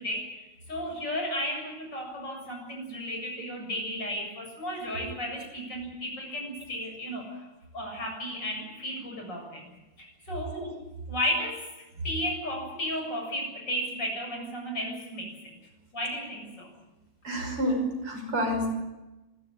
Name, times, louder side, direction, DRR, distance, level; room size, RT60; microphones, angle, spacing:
voice 1, 0.0-7.5 7.7-9.6 10.0-10.6 11.1-11.7 12.0-15.3 15.9-16.7, equal, 55° left, 2 dB, 8.2 m, -34 dB
voice 2, 17.2-18.7, equal, 75° right, 3 dB, 7.0 m, -29 dB
26.0 x 14.5 x 9.8 m, 1.0 s
omnidirectional pair, 2.4 m